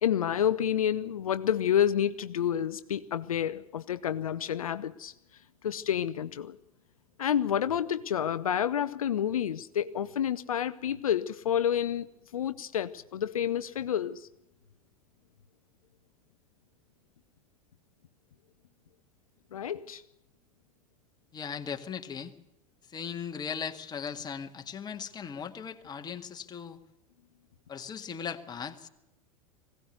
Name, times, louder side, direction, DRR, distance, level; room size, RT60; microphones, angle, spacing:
voice 1, 0.0-6.6 7.2-12.1 12.3-14.3 19.5-20.0, left 9 dB, 75° left, 0.8 m, -29 dB
voice 2, 21.3-22.3 22.9-26.8 27.7-28.9, left 7 dB, 25° left, 2.0 m, -38 dB
21.0 x 17.0 x 8.1 m
figure-of-eight pair, 85°, 18 cm